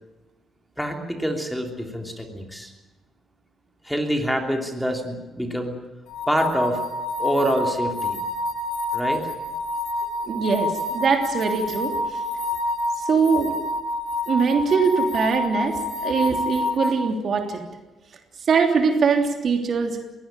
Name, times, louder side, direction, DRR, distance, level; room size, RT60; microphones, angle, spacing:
voice 1, 0.8-2.7 3.8-5.8 6.3-6.8 7.2-8.2 8.9-9.3, equal, ahead, 3 dB, 3.3 m, -26 dB
sound 1, 6.1-16.9, left 2 dB, 80° left, 2.7 m, -28 dB
voice 2, 10.3-12.0 13.1-13.5 14.3-17.6 18.5-20.1, right 5 dB, 55° right, 4 dB, 3.2 m, -22 dB
22.0 x 17.5 x 9.1 m, 1.1 s
cardioid pair, 95°, 0 cm